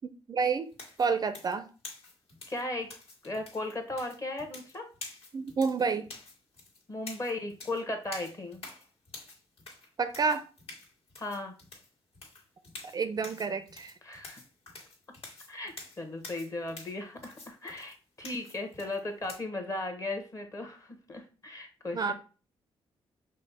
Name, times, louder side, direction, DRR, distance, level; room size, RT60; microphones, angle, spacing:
voice 1, 0.3-0.7 1.0-1.7 5.3-6.1 10.0-10.5 12.9-13.9 21.9-22.1, right 5 dB, 35° right, 10 dB, 0.4 m, -29 dB
sound 1, 0.7-19.4, left 3 dB, 60° left, 1.8 m, -48 dB
voice 2, 2.5-2.9 3.2-4.9 6.9-8.6 11.2-11.5 14.0-14.4 15.5-22.1, left 2 dB, 30° left, 5 dB, 1.1 m, -36 dB
5.2 x 2.0 x 4.1 m, 0.36 s
cardioid pair, 100°, 11 cm